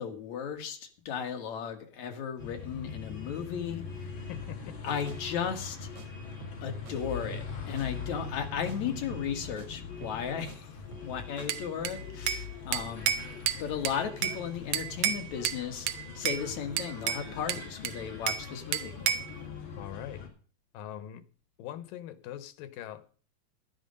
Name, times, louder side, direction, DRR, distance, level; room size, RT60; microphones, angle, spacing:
voice 1, 0.0-4.1 4.8-5.9 6.6-10.7 11.0-13.1 13.6-19.0, left 7 dB, 60° left, 2.8 m, -35 dB
sound 1, 2.4-20.3, left 6 dB, 40° left, 3.2 m, -42 dB
voice 2, 4.3-4.8 19.8-20.2 20.7-21.2 21.6-23.1, left 11 dB, 90° left, 2.7 m, -42 dB
sound 2, 4.6-4.8 5.1-5.2 5.5-5.7 6.0-6.1 6.4-6.6 6.9-7.0 7.3-7.5 7.8-7.9 8.2-8.4 8.7-8.8 9.1-9.3 9.6-9.7 10.0-10.6 10.9-11.1 11.4-11.5, right 4 dB, 55° right, 4.0 m, -49 dB
Bell / Glass, 11.5-12.5 12.7-14.4 14.7-15.6 15.9-16.4 16.8-18.5 18.7-19.3, right 10 dB, 75° right, 1.7 m, -31 dB
11.0 x 11.0 x 5.3 m
omnidirectional pair, 3.9 m